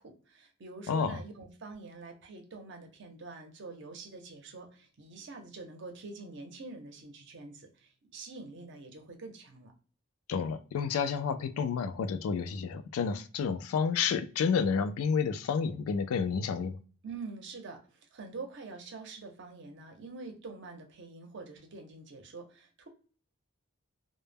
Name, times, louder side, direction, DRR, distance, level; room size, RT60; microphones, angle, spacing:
voice 1, 0.0-9.7 17.0-22.9, right 3 dB, 55° right, 0.6 m, -46 dB
voice 2, 0.9-1.2 10.3-16.8, left 6 dB, 85° left, 0.3 m, -30 dB
2.1 x 2.1 x 3.3 m
head